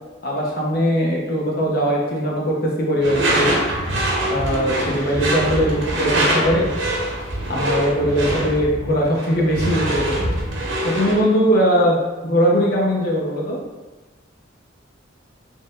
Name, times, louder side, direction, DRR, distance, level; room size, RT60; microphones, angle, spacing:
voice 1, 0.2-3.5 4.3-6.7 7.5-10.2 10.8-12.0 12.2-13.6, equal, 50° left, -3 dB, 0.9 m, -20 dB
Door / Screech, 3.0-11.2, right 1 dB, 65° right, 0.8 m, -23 dB
4.3 x 3.4 x 2.4 m, 1.2 s
head